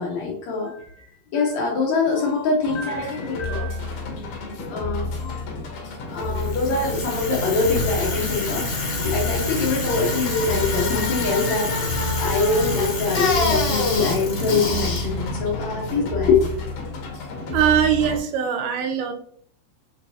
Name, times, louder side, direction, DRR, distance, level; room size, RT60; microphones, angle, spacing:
voice 1, 0.0-3.9 4.7-5.5 6.1-16.5, left 4 dB, 90° left, -2 dB, 1.5 m, -24 dB
sound 1, 2.6-18.2, left 3 dB, 70° left, 1.9 m, -31 dB
Bicycle, 6.2-16.3, left 2 dB, 55° left, 1.7 m, -26 dB
voice 2, 17.5-19.1, right 9 dB, 85° right, 5 dB, 2.6 m, -21 dB
6.2 x 3.0 x 2.7 m, 0.62 s
omnidirectional pair, 4.5 m